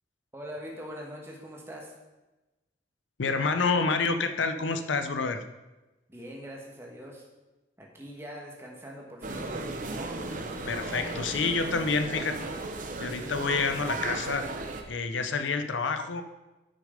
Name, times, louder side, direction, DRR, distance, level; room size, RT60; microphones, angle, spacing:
voice 1, 0.3-1.9 6.1-7.2 7.8-9.5, equal, 15° right, -1 dB, 1.4 m, -42 dB
voice 2, 3.2-5.4 10.7-12.4 13.0-14.5 14.9-16.2, left 4 dB, 85° left, 9 dB, 0.6 m, -28 dB
sound 1, 9.2-14.8, right 2 dB, 45° right, 0.8 m, -35 dB
8.7 x 6.3 x 5.1 m, 1.1 s
head